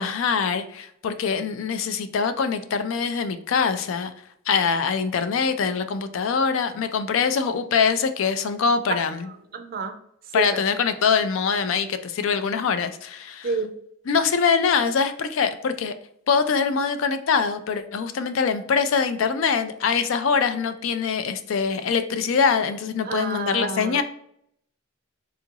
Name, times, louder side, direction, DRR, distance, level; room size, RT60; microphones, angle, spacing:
voice 1, 0.0-4.1 4.5-9.3 10.3-13.5 14.1-15.9 16.3-24.0, left 6 dB, 65° left, 10 dB, 0.4 m, -23 dB
voice 2, 9.5-10.0 10.3-10.6 13.4-13.7 23.0-24.0, right 4 dB, 45° right, 7 dB, 0.4 m, -29 dB
3.7 x 2.4 x 2.8 m, 0.71 s
head